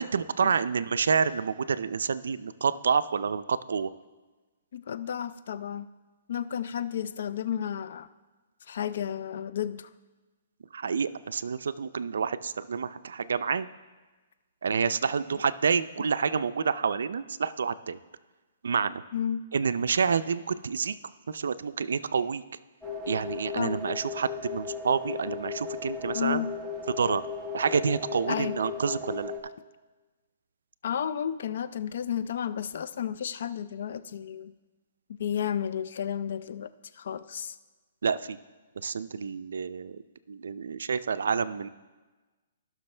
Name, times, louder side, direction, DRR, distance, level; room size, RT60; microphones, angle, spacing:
voice 1, 0.0-3.9 10.7-13.7 14.6-18.0 18.6-19.0 19.5-21.0 21.3-22.4 23.1-26.4 26.9-27.2 27.5-29.3 38.0-38.4 38.8-40.0 40.3-41.7, right 6 dB, 85° right, 14 dB, 0.4 m, -28 dB
voice 2, 4.7-5.9 6.3-8.1 8.7-9.9 19.1-19.4 23.6-23.8 26.1-26.5 28.3-28.6 30.8-34.5 35.1-36.7 37.0-37.6, left 9 dB, 65° left, 14 dB, 0.4 m, -32 dB
sound 1, 22.8-29.4, left 5 dB, 5° right, 0.9 m, -36 dB
16.0 x 6.1 x 3.3 m, 1.3 s
hypercardioid pair, 160°, 0 cm